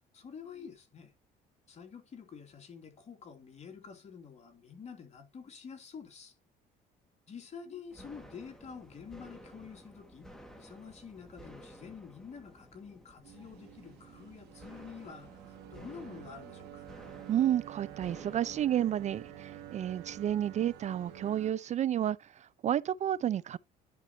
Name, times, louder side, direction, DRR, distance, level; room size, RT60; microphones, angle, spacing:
voice 1, 0.1-1.1 1.7-6.4 7.3-10.3 10.6-16.9, left 6 dB, 40° left, 2.8 m, -48 dB
sound 1, 7.9-21.4, equal, 5° left, 2.2 m, -54 dB
sound 2, 13.2-21.5, right 12 dB, 85° right, 1.9 m, -49 dB
voice 2, 17.3-23.6, right 11 dB, 45° right, 0.4 m, -31 dB
11.0 x 5.3 x 3.0 m
cardioid pair, 110°, 17 cm